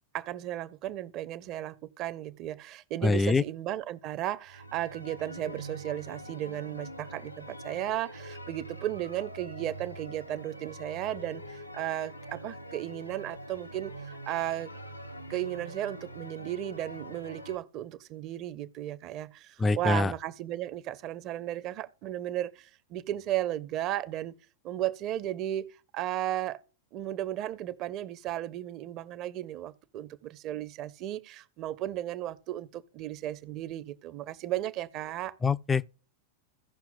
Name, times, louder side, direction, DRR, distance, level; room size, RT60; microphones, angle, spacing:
voice 1, 0.1-14.7 15.3-24.4 24.6-25.7 25.9-26.6 26.9-35.3, right 13 dB, 40° right, 0.6 m, -35 dB
voice 2, 3.0-3.4 19.6-20.1 35.4-35.9, left 3 dB, 15° left, 0.3 m, -24 dB
sound 1, 4.5-17.6, right 1 dB, 90° left, 0.6 m, -44 dB
16.5 x 5.8 x 2.2 m
figure-of-eight pair, 90°, 0 cm